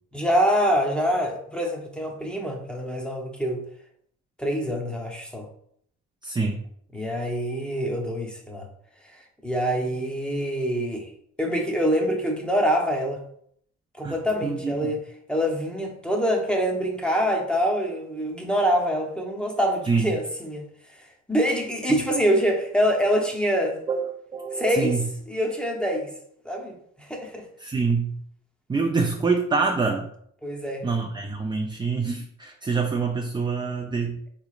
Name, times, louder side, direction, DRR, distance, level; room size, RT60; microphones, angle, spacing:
voice 1, 0.1-3.6 4.4-5.5 6.9-8.7 9.4-11.1 11.4-13.2 14.0-15.0 15.3-20.6 21.3-23.8 24.5-25.0 25.3-26.1 26.4-27.4 30.4-30.8, equal, 5° left, 0 dB, 0.7 m, -25 dB
voice 2, 6.2-6.6 14.0-14.2 14.4-14.8 19.9-20.1 21.9-22.0 23.9-25.1 27.6-28.2 28.7-30.1 30.8-34.2, right 4 dB, 15° right, 2 dB, 0.3 m, -26 dB
3.9 x 3.1 x 2.4 m, 0.66 s
cardioid pair, 90°, 30 cm